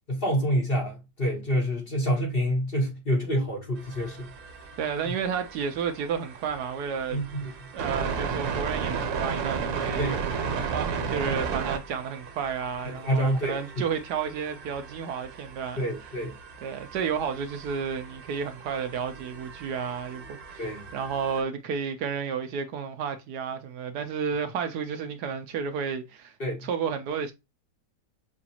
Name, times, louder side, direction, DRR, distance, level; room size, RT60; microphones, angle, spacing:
voice 1, 0.1-4.3 5.0-5.1 7.1-7.5 10.0-10.2 12.8-13.6 15.8-16.4 20.6-20.8 26.4-26.7, equal, 35° left, 1.2 m, -27 dB
sound 1, 3.8-21.4, right 6 dB, 90° right, 1.6 m, -35 dB
voice 2, 4.8-7.2 7.7-10.1 10.7-15.9 16.6-26.3 26.6-27.3, right 6 dB, 70° right, 1.1 m, -31 dB
5.9 x 2.4 x 2.8 m
omnidirectional pair, 1.9 m